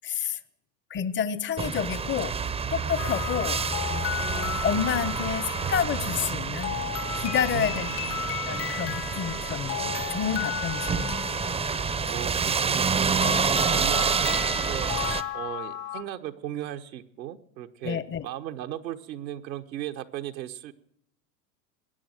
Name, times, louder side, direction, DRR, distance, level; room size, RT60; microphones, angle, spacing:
voice 1, 0.0-0.4 0.9-2.3 2.7-3.6 4.3-6.8 7.2-7.9 8.3-11.2 17.8-18.2, left 8 dB, 25° left, 18 dB, 0.7 m, -29 dB
sound 1, 1.6-15.2, right 5 dB, 10° right, 0.6 m, -28 dB
sound 2, 3.0-16.0, left 11 dB, 70° left, 1.3 m, -35 dB
voice 2, 7.5-8.2 12.1-13.4 13.7-20.7, right 12 dB, 85° right, 6 dB, 1.1 m, -37 dB
21.0 x 9.0 x 7.5 m, 0.77 s
hypercardioid pair, 105°, 50 cm